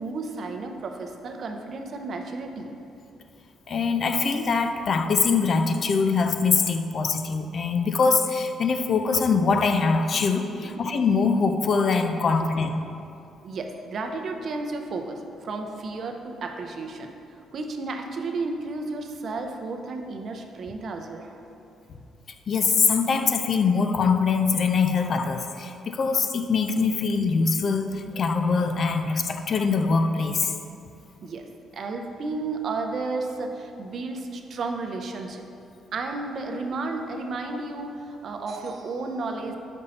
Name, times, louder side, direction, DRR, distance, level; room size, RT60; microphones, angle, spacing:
voice 1, 0.0-2.7 10.6-10.8 12.4-12.5 13.4-21.4 31.2-35.4 35.9-39.5, right 3 dB, 55° right, 4 dB, 0.6 m, -33 dB
voice 2, 3.7-12.8 22.5-30.5, left 4 dB, 50° left, 7 dB, 0.4 m, -23 dB
5.3 x 5.3 x 4.1 m, 2.6 s
cardioid pair, 90°, 0 cm